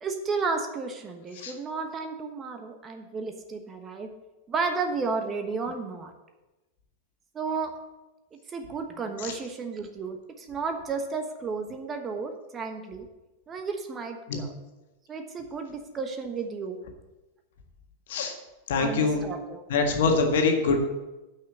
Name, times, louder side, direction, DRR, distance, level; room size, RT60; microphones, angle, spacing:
voice 1, 0.0-4.1 4.5-6.1 7.3-7.7 8.5-13.1 13.5-14.5 15.1-16.8 18.8-19.6, right 4 dB, 20° right, 5 dB, 1.2 m, -32 dB
voice 2, 18.7-19.2 19.7-20.9, left 4 dB, 55° left, 3 dB, 1.7 m, -24 dB
9.3 x 6.0 x 7.0 m, 1.1 s
figure-of-eight pair, 90°, 0 cm